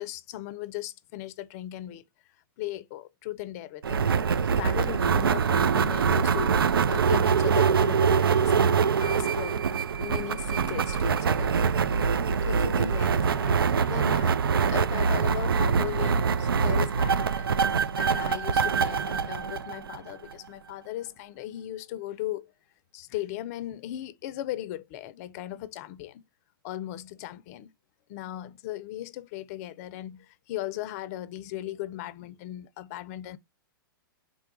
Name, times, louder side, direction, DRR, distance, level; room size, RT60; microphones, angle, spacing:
voice 1, 0.0-2.0 2.6-4.0 4.5-9.6 10.0-11.6 12.4-14.4 14.7-17.5 18.0-22.5 22.9-26.2 26.6-27.7 28.1-33.4, left 14 dB, 45° left, 0.5 m, -37 dB
sound 1, 3.8-20.3, right 6 dB, 85° right, 0.4 m, -24 dB
3.6 x 2.2 x 3.8 m
hypercardioid pair, 120°, 12 cm